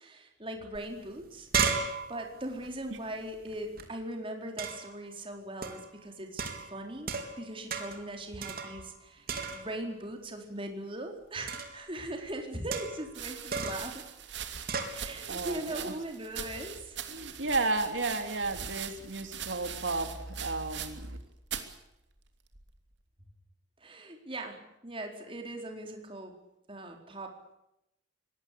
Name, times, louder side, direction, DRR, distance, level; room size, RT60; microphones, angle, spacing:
voice 1, 0.0-1.5 2.1-14.0 14.9-17.0 23.8-26.3 26.7-27.4, right 1 dB, 30° right, 3 dB, 4.3 m, -40 dB
sound 1, 0.8-0.9 1.1-3.9 4.6-5.0 5.6-5.9 6.4-7.4 7.7-8.1 8.4-9.0 9.3-9.9 11.5-11.8 12.7-13.1 13.5-13.9 14.7-15.0, right 5 dB, 55° right, 3.8 m, -34 dB
sound 2, 13.1-21.2 21.4-21.8 22.5-22.9, right 8 dB, 70° right, 2.9 m, -41 dB
voice 2, 15.0-15.9 17.1-21.2, right 3 dB, 85° right, 7 dB, 2.9 m, -33 dB
24.5 x 19.5 x 8.6 m, 0.85 s
head